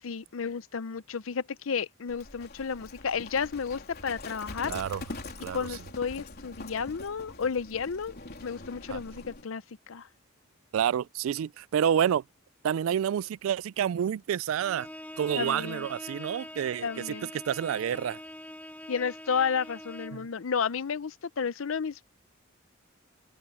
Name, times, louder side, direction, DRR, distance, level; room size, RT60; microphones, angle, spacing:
voice 1, 0.0-4.8 5.5-10.1 15.3-15.9 16.8-17.3 18.9-22.0, left 6 dB, 75° left, 0.6 m, -32 dB
Livestock farm animals working animals, 2.1-9.4, left 2 dB, 50° left, 3.7 m, -44 dB
voice 2, 4.7-5.0 5.4-5.6 8.9-9.0 10.7-12.2 12.6-14.9 15.2-17.1 17.5-18.2 20.1-20.3, right 9 dB, 75° right, 0.3 m, -28 dB
Bowed string instrument, 14.6-20.3, left 1 dB, 10° left, 2.9 m, -44 dB
head